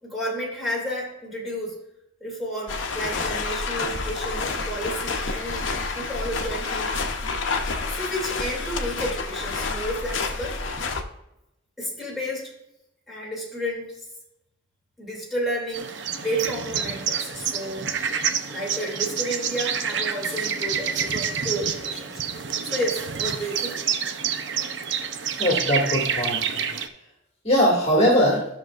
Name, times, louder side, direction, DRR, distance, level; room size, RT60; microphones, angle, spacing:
voice 1, 0.0-1.7 2.2-6.9 7.9-10.6 11.8-12.5 13.1-14.0 15.0-17.9 18.5-23.8, equal, ahead, -5 dB, 2.7 m, -31 dB
sound 1, 2.7-11.0, left 4 dB, 75° left, 0.8 m, -29 dB
sound 2, 15.7-26.9, right 7 dB, 65° right, 0.7 m, -28 dB
voice 2, 25.4-26.5 27.4-28.5, equal, 30° left, -4 dB, 2.2 m, -20 dB
13.0 x 6.5 x 2.5 m, 0.86 s
head